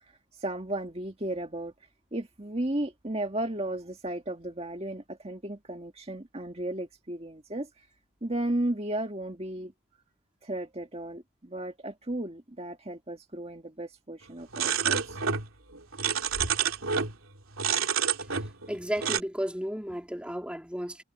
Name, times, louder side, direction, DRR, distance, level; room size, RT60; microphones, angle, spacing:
voice 1, 0.4-1.7 2.1-7.7 8.2-9.7 10.4-15.2, right 1 dB, 30° right, 2.0 m, -34 dB
sound 1, 14.5-15.5 15.7-17.1 17.6-18.7 19.0-19.2, right 7 dB, 75° right, 2.8 m, -28 dB
voice 2, 18.7-21.0, equal, 5° right, 3.3 m, -33 dB
head